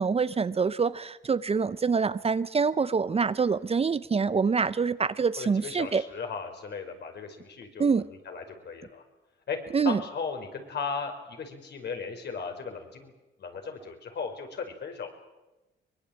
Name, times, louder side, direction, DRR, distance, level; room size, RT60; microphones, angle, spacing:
voice 1, 0.0-6.0 7.8-8.1 9.7-10.0, right 5 dB, 30° right, 0.8 m, -25 dB
voice 2, 5.4-9.0 9.5-9.6 9.8-13.1 13.4-15.1, left 5 dB, 55° left, 5.3 m, -36 dB
23.5 x 21.5 x 8.9 m
cardioid pair, 90°, 20 cm